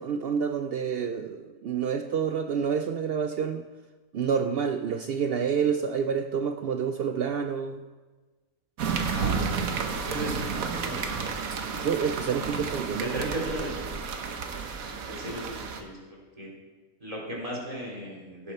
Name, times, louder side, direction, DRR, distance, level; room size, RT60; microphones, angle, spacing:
voice 1, 0.0-3.7 4.1-7.8 9.2-9.6 11.8-13.3, right 7 dB, 65° right, 7 dB, 0.6 m, -28 dB
sound 1, 8.8-15.8, right 5 dB, 85° right, 1.4 m, -31 dB
voice 2, 9.1-11.1 12.3-12.7 13.0-14.0 14.9-16.5 17.0-18.5, right 1 dB, 25° right, -4 dB, 3.0 m, -37 dB
16.5 x 7.1 x 4.3 m, 1.3 s
omnidirectional pair, 1.4 m